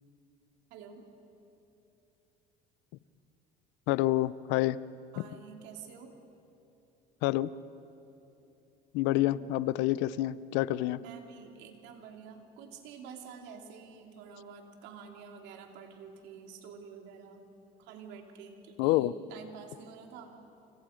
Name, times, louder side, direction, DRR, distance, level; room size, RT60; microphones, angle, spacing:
voice 1, 0.7-1.1 5.1-6.1 9.2-9.4 11.0-17.4 17.8-20.4, right 6 dB, 75° right, 3 dB, 2.9 m, -49 dB
voice 2, 3.9-4.8 5.2-5.3 7.2-7.5 8.9-11.0 18.8-19.1, left 16 dB, 80° left, 18 dB, 0.6 m, -28 dB
30.0 x 26.0 x 5.1 m, 2.9 s
supercardioid pair, 90°, 18 cm